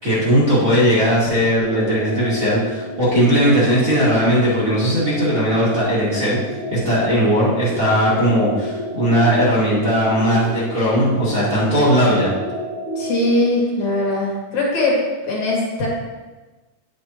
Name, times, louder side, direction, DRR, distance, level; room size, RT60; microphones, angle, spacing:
voice 1, 0.0-6.4 6.7-12.3, equal, 30° right, -9 dB, 2.1 m, -18 dB
sound 1, 1.6-13.5, equal, 25° left, 2.2 m, -30 dB
voice 2, 13.0-14.9 15.3-15.9, left 2 dB, 60° left, -5 dB, 3.3 m, -20 dB
10.0 x 6.9 x 3.0 m, 1.2 s
omnidirectional pair, 3.8 m